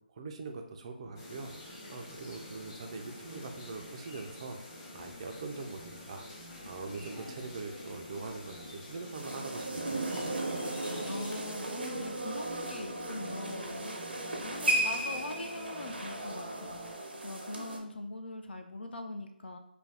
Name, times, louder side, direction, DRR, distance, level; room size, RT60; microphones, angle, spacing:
voice 1, 0.2-6.3 6.6-10.0 10.3-10.6, right 3 dB, 35° right, 4 dB, 0.4 m, -43 dB
sound 1, 1.0-16.9, right 1 dB, 45° left, 1.0 m, -50 dB
sound 2, 1.2-11.4, left 1 dB, 25° left, 0.6 m, -49 dB
sound 3, 9.1-17.8, right 1 dB, 85° right, 0.6 m, -35 dB
voice 2, 11.0-13.9 14.4-19.6, left 2 dB, 80° left, 5 dB, 0.4 m, -42 dB
2.5 x 2.2 x 3.2 m, 0.80 s
figure-of-eight pair, 155°, 5 cm